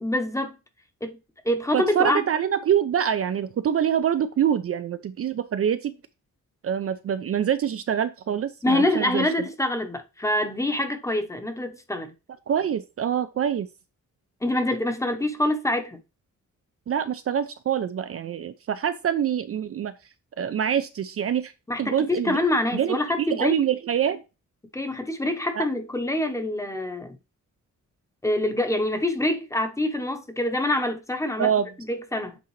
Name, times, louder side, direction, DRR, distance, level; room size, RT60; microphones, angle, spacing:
voice 1, 0.0-0.5 1.0-1.2 1.4-2.2 8.6-12.1 14.4-16.0 21.7-23.6 24.7-27.1 28.2-31.5 31.8-32.4, left 1 dB, 10° left, 0.9 m, -25 dB
voice 2, 1.7-5.9 6.6-9.3 12.5-13.7 16.9-19.9 20.4-21.5 21.8-22.4 22.7-24.2 25.5-25.7 31.4-31.7, right 9 dB, 50° right, 0.5 m, -25 dB
8.1 x 3.8 x 3.2 m
wide cardioid pair, 155°, 31 cm